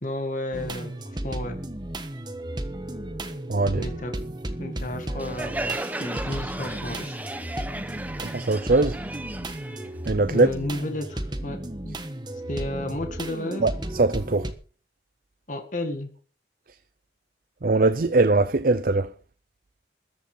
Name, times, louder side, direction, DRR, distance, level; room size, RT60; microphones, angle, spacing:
voice 1, 0.0-0.9 1.2-1.6 3.8-4.1 4.6-7.2 10.3-12.0 12.5-13.7 15.5-16.1, left 1 dB, 45° left, 2.0 m, -32 dB
sound 1, 0.5-14.5, right 1 dB, 25° right, 1.4 m, -34 dB
voice 2, 3.5-3.8 8.3-9.0 10.1-10.5 13.6-14.5 17.6-19.1, right 3 dB, 50° right, 0.6 m, -21 dB
Crowd, 5.2-10.6, right 2 dB, 10° right, 0.9 m, -35 dB
14.0 x 10.0 x 5.5 m
head